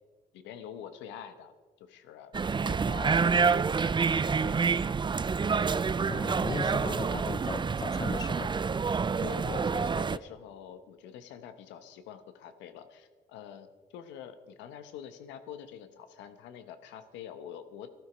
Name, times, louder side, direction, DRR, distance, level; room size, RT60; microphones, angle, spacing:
voice 1, 0.3-2.3 2.6-4.6 9.2-17.9, left 9 dB, 85° left, 1.0 m, -46 dB
sound 1, 2.3-10.2, right 5 dB, 25° right, 0.4 m, -28 dB
voice 2, 6.1-8.5, left 4 dB, 20° left, 0.6 m, -37 dB
14.0 x 12.5 x 5.1 m
supercardioid pair, 50°, 18 cm